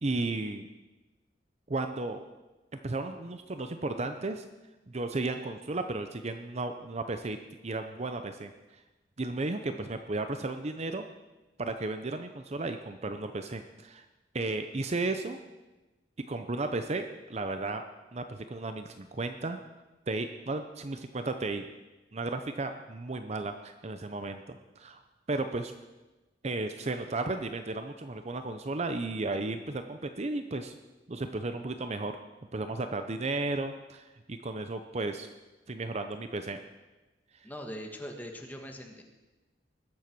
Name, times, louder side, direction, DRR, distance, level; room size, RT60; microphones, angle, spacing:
voice 1, 0.0-0.7 1.7-2.2 2.8-4.4 4.9-7.4 7.6-8.5 9.2-11.0 11.6-14.0 14.3-15.4 16.3-17.8 18.1-19.6 20.1-21.6 22.1-25.0 25.3-25.7 26.4-30.7 31.1-32.2 32.5-35.3 35.7-36.6, right 2 dB, 35° right, 7 dB, 0.7 m, -34 dB
voice 2, 37.4-39.0, equal, 10° left, 3 dB, 1.6 m, -41 dB
20.0 x 7.8 x 6.1 m, 1.1 s
head